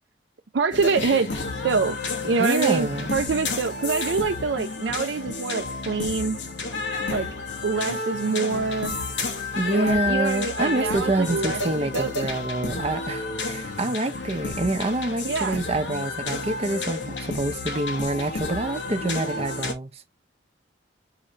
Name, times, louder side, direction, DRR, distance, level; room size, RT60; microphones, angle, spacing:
voice 1, 0.5-2.0 2.2-6.4 7.1-7.3 7.6-9.0 9.7-12.1 15.2-15.6, right 5 dB, 70° right, 0.5 m, -25 dB
sound 1, 0.7-19.7, left 3 dB, 80° left, 1.1 m, -31 dB
voice 2, 2.4-3.1 9.5-19.9, right 2 dB, 35° right, 0.7 m, -26 dB
4.9 x 3.2 x 2.7 m
head